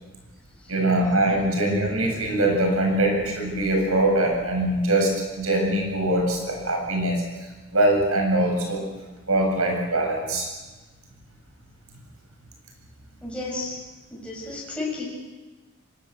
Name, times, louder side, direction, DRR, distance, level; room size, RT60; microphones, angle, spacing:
voice 1, 0.7-7.2 7.7-8.8 9.3-10.5, right 1 dB, 85° right, 2 dB, 7.9 m, -22 dB
voice 2, 13.2-13.7 14.1-15.0, left 3 dB, 5° left, -4 dB, 7.5 m, -32 dB
24.5 x 20.0 x 8.0 m, 1.2 s
head